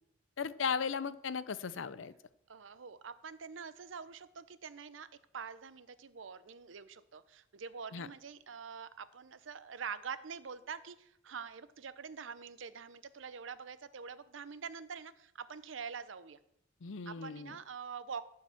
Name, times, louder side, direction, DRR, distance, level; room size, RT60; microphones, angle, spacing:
voice 1, 0.4-2.1 7.9-8.1 16.8-17.5, left 6 dB, 80° left, 15 dB, 0.6 m, -36 dB
voice 2, 2.5-5.1 5.3-16.4 17.1-18.2, right 6 dB, 80° right, 14 dB, 0.6 m, -45 dB
14.0 x 4.7 x 7.1 m, 0.80 s
head